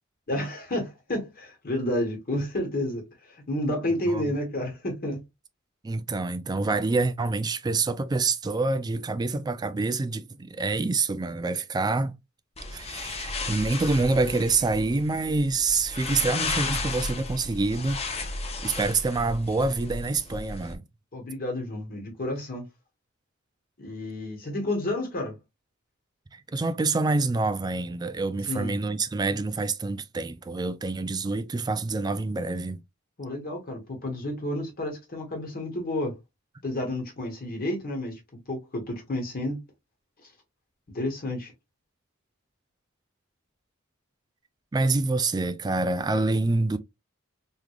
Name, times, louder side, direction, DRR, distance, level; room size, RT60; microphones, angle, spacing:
voice 1, 0.3-5.2 21.1-22.6 23.8-25.4 28.5-28.7 33.2-36.1 36.6-38.2 38.5-39.6 40.2-40.3 40.9-41.5, left 1 dB, 45° left, 1.2 m, -30 dB
voice 2, 5.8-12.2 12.7-18.0 18.4-20.8 26.3-32.8 44.7-46.8, right 3 dB, 20° right, 0.3 m, -26 dB
sound 1, 12.6-20.8, left 3 dB, 30° left, 0.6 m, -34 dB
3.6 x 3.1 x 2.3 m
head